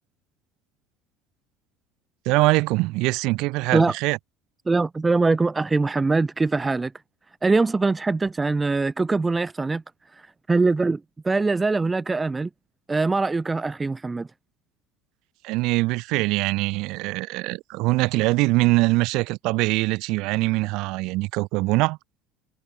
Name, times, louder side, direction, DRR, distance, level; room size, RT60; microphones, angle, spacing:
voice 1, 2.3-4.2 15.4-22.0, right 22 dB, 65° right, 3.5 m, -23 dB
voice 2, 4.7-6.9 7.4-9.8 10.5-11.0 11.2-12.5 12.9-14.3, right 3 dB, 15° right, 0.7 m, -22 dB
cardioid pair, 135°, 0 cm